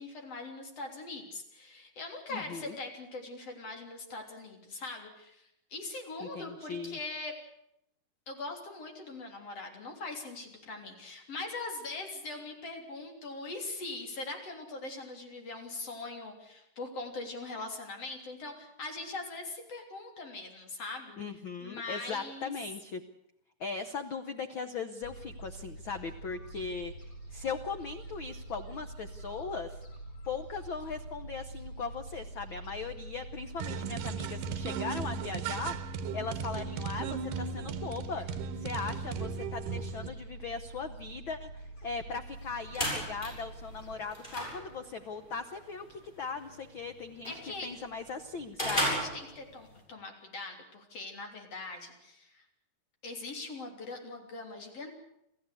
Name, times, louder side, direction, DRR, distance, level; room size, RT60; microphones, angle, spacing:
voice 1, 0.0-7.3 8.3-21.2 21.6-22.5 26.5-26.6 47.3-47.7 48.7-52.4 53.0-54.9, left 3 dB, 50° left, 3 dB, 4.3 m, -41 dB
voice 2, 2.3-2.8 6.2-7.0 21.2-23.0 23.6-26.9 27.3-29.8 30.2-38.3 38.6-48.9, left 5 dB, 75° left, 8 dB, 1.1 m, -39 dB
Gull seagull, 25.0-44.0, right 2 dB, 30° left, 4.9 m, -46 dB
sound 1, 33.6-40.1, right 6 dB, 85° right, 2.7 m, -36 dB
sound 2, 42.3-49.8, equal, 15° left, 7.3 m, -37 dB
27.5 x 14.5 x 8.4 m, 0.80 s
omnidirectional pair, 3.8 m